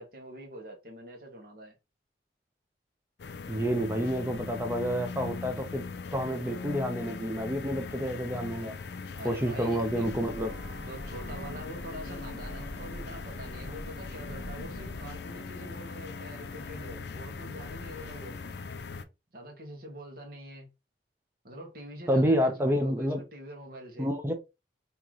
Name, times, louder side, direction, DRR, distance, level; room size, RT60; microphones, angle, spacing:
voice 1, 0.0-1.8 9.1-10.2 10.9-18.4 19.3-20.7 21.4-24.1, right 1 dB, 55° right, 1.3 m, -44 dB
sound 1, 3.2-19.0, left 4 dB, 70° left, 0.5 m, -40 dB
voice 2, 3.5-5.8 6.1-8.7 9.2-10.5 22.1-23.2 24.0-24.3, equal, 15° right, 0.5 m, -29 dB
Breathing / Train, 9.8-15.3, equal, 80° right, 0.9 m, -43 dB
3.2 x 2.9 x 3.7 m
head